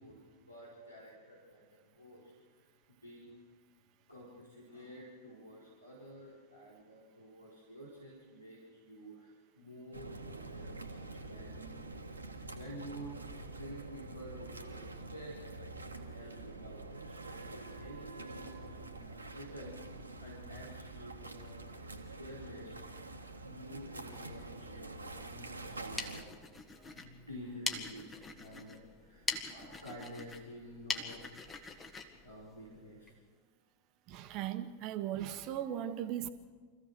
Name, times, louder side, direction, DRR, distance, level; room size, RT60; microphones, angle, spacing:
voice 1, 0.0-2.7 3.0-3.3 4.1-12.1 12.5-13.2 13.5-15.5 16.1-19.8 20.2-21.6 22.2-23.0 23.4-26.4 26.8-31.2 32.2-33.2, equal, 90° left, 4.4 m, -50 dB
sound 1, 9.9-26.2, right 2 dB, 80° right, 1.6 m, -46 dB
sound 2, 25.7-33.2, left 4 dB, 20° left, 1.9 m, -43 dB
voice 2, 34.1-36.3, right 11 dB, 40° right, 1.3 m, -38 dB
25.5 x 15.5 x 6.6 m
figure-of-eight pair, 90°, 0 cm